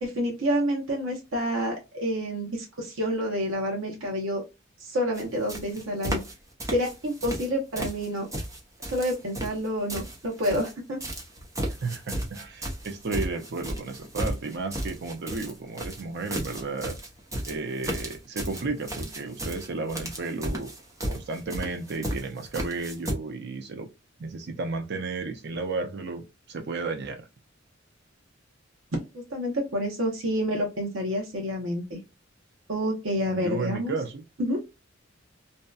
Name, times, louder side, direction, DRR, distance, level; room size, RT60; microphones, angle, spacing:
voice 1, 0.0-4.4 4.8-6.2 6.7-8.3 8.9-11.0 28.9-32.0 32.7-33.9 34.4-34.6, equal, 85° right, 0.8 m, -28 dB
sound 1, 5.1-5.2 5.5-6.3 6.6-7.5 7.8-10.7 11.0-23.1, right 1 dB, 15° right, 0.7 m, -34 dB
voice 2, 11.8-17.0 17.5-20.7 21.1-23.9 24.2-27.3 33.3-34.2, right 3 dB, 60° right, 0.5 m, -33 dB
2.7 x 2.2 x 2.2 m
head